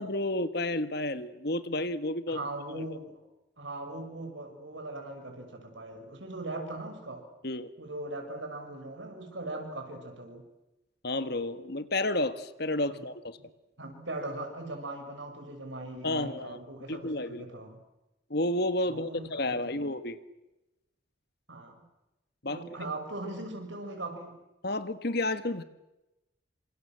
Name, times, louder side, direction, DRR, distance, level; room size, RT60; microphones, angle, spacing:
voice 1, 0.0-2.4 2.7-2.8 7.4-7.7 11.0-13.4 16.0-16.6 16.9-17.4 18.3-20.2 22.4-22.6 24.6-25.6, left 1 dB, 55° left, 12 dB, 1.6 m, -31 dB
voice 2, 2.3-3.2 3.6-7.2 7.8-10.5 12.9-13.0 13.4-13.5 13.8-17.8 18.9-19.9 21.5-21.8 22.5-24.3, right 2 dB, 70° right, 4 dB, 6.7 m, -40 dB
29.0 x 26.5 x 7.7 m, 0.98 s
head